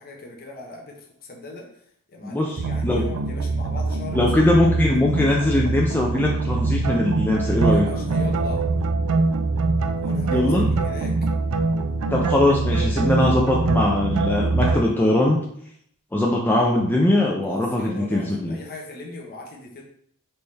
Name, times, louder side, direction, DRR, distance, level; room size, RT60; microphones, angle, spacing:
voice 1, 0.0-1.7 2.1-4.5 4.8-4.9 7.6-8.6 10.0-10.5 10.8-11.2 17.4-19.8, left 2 dB, 45° left, 0 dB, 0.8 m, -39 dB
voice 2, 2.2-3.0 4.1-7.9 10.3-10.7 12.1-15.4 16.1-18.6, left 1 dB, 10° left, -2 dB, 0.4 m, -21 dB
sound 1, 2.6-14.8, right 3 dB, 75° right, 0.5 m, -23 dB
4.4 x 3.2 x 3.3 m, 0.66 s
head